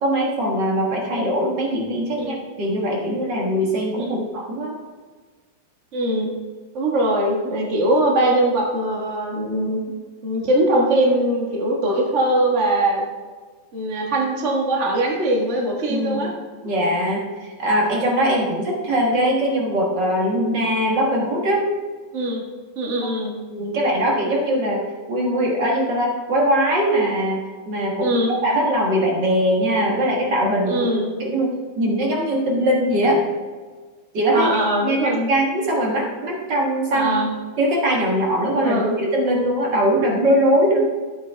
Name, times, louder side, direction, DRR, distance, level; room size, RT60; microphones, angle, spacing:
voice 1, 0.0-4.8 15.9-16.4 16.6-21.6 23.5-24.8 25.1-30.9 31.2-33.2 34.1-34.5 34.8-37.3 37.6-40.8, equal, 50° right, -1 dB, 1.3 m, -21 dB
voice 2, 5.9-6.3 6.7-9.8 10.2-13.0 13.7-16.3 22.1-22.4 22.8-23.3 28.0-28.3 30.7-31.1 34.3-35.3 36.9-37.3 38.6-38.9, right 1 dB, 90° right, -1 dB, 0.6 m, -21 dB
12.0 x 8.3 x 3.4 m, 1.4 s
omnidirectional pair, 4.0 m